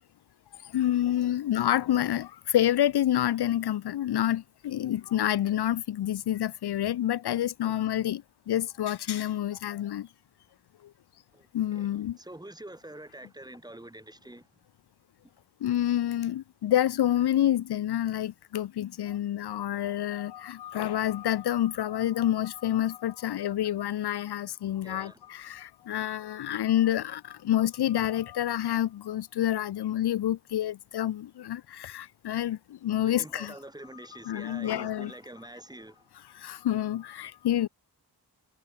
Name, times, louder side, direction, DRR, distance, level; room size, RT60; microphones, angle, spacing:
voice 1, 0.7-8.2 8.5-10.1 11.5-12.2 15.6-33.5 34.2-35.1 36.3-37.7, left 12 dB, 75° left, 0.6 m, -28 dB
voice 2, 11.3-11.9 12.2-14.5 24.8-25.2 33.1-36.1, right 1 dB, 10° right, 3.5 m, -46 dB
wide cardioid pair, 140°, 40 cm